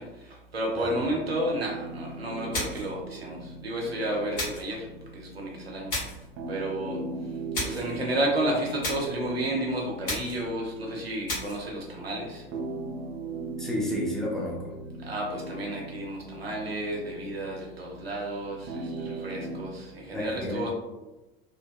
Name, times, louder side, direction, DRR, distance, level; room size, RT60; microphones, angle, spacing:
voice 1, 0.0-4.9 5.1-5.9 6.5-7.0 7.6-12.4 15.0-20.7, right 1 dB, 90° right, -2 dB, 0.7 m, -32 dB
sound 1, 1.2-19.7, right 2 dB, 40° right, 0.6 m, -39 dB
sound 2, 2.5-3.0 4.3-4.7 5.9-6.3 7.5-7.9 8.8-9.2 10.0-10.5 11.3-11.6, left 2 dB, 65° left, 1.3 m, -33 dB
voice 2, 13.6-14.7 20.1-20.7, left 1 dB, ahead, -4 dB, 0.7 m, -31 dB
2.9 x 2.2 x 2.3 m, 1.0 s
figure-of-eight pair, 80°, 30 cm